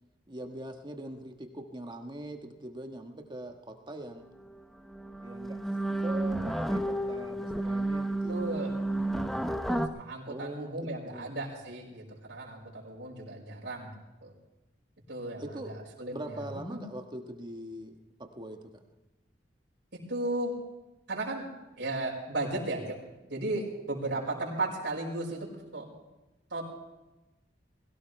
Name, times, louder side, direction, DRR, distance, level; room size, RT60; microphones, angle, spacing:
voice 1, 0.3-4.3 5.2-5.6 6.0-6.8 7.1-8.4 10.3-10.7 11.1-11.3 15.4-15.7 16.1-18.7, right 1 dB, 25° right, 4 dB, 1.5 m, -42 dB
sound 1, 4.5-4.6 4.9-9.9, right 1 dB, ahead, 0.8 m, -31 dB
voice 2, 8.3-8.8 9.4-13.9 14.2-14.3 15.1-15.4 16.0-16.8 19.9-20.6 21.1-21.5 21.8-23.0 23.3-25.9 26.5-26.6, right 2 dB, 70° right, -5 dB, 5.4 m, -35 dB
22.0 x 17.0 x 3.4 m, 1.0 s
head